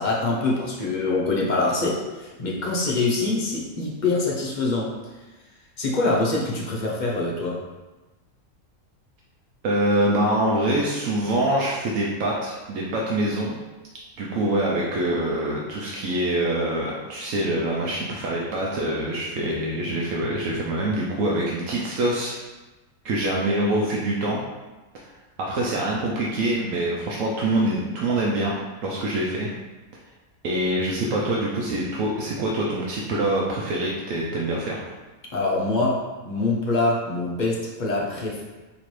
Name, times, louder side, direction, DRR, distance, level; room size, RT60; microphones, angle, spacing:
voice 1, 0.0-4.9 5.8-7.6 35.3-38.4, left 3 dB, 45° left, -4 dB, 0.6 m, -24 dB
voice 2, 9.6-13.6 14.2-22.4 23.0-24.4 24.9-25.0 25.4-28.6 28.8-29.5 30.4-34.8, right 1 dB, 75° right, -3 dB, 1.0 m, -25 dB
4.1 x 2.9 x 3.1 m, 1.2 s
omnidirectional pair, 1.5 m